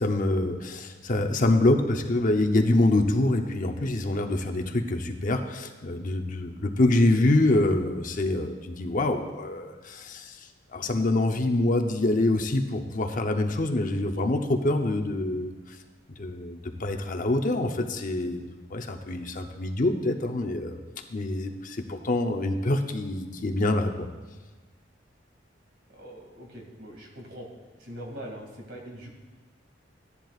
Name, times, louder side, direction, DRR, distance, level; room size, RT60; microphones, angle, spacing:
voice 1, 0.0-10.4 10.7-15.8 16.2-20.8 21.1-24.1, left 2 dB, 45° left, 4 dB, 0.8 m, -25 dB
voice 2, 25.9-27.5 27.8-29.1, equal, 65° right, 0 dB, 2.4 m, -42 dB
15.0 x 10.5 x 2.5 m, 1.3 s
head